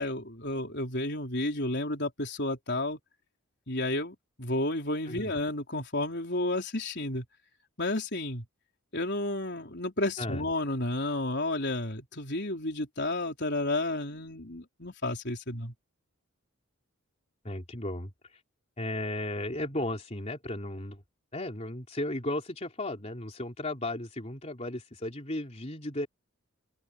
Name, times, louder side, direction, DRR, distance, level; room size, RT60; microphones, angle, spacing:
voice 1, 0.0-3.0 3.7-7.2 7.8-8.4 8.9-15.7, left 2 dB, 50° left, 4.6 m, -31 dB
voice 2, 17.4-18.4 18.8-21.0 21.3-26.1, left 1 dB, 30° left, 3.7 m, -35 dB
head